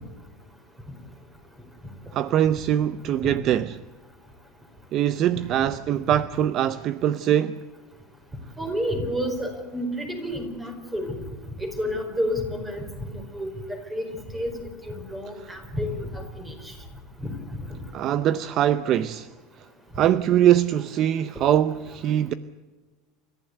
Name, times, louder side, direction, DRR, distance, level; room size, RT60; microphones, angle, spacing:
voice 1, 2.1-3.8 4.9-7.6 17.9-19.3 20.0-22.3, right 11 dB, 35° right, 0.6 m, -22 dB
voice 2, 8.6-11.2 11.6-14.1 14.3-14.6 14.8-16.7 17.2-17.3 17.7-17.8, equal, 10° right, 4.6 m, -30 dB
29.5 x 14.5 x 8.0 m
supercardioid pair, 160°, 0 cm